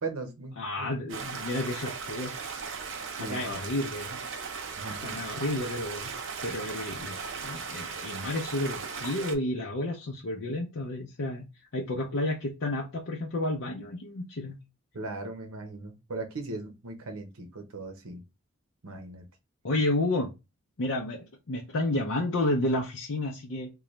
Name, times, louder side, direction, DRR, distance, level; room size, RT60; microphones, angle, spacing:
voice 1, 0.0-1.3 3.2-3.6 4.8-5.2 14.9-18.2 18.8-19.2, right 3 dB, 85° right, 5 dB, 0.9 m, -38 dB
voice 2, 0.6-2.3 3.2-4.2 5.0-6.1 6.4-11.5 11.7-14.6 19.6-20.3 20.8-23.7, left 2 dB, 65° left, -1 dB, 0.6 m, -31 dB
Stream, 1.1-9.4, right 5 dB, 60° right, 0.5 m, -37 dB
3.8 x 2.3 x 3.1 m, 0.25 s
head